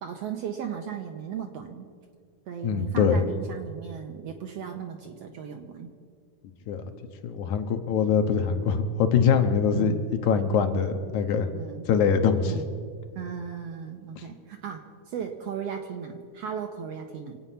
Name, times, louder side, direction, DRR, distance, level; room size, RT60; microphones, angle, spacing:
voice 1, 0.0-1.9 2.5-5.9 9.7-10.1 11.5-11.9 12.5-12.6 13.1-17.4, right 7 dB, 70° right, 4 dB, 1.6 m, -36 dB
voice 2, 2.6-3.2 6.7-6.8 7.2-9.9 10.2-11.5 11.9-12.5, left 6 dB, 75° left, 6 dB, 2.3 m, -23 dB
26.0 x 8.8 x 5.7 m, 2.1 s
omnidirectional pair, 3.7 m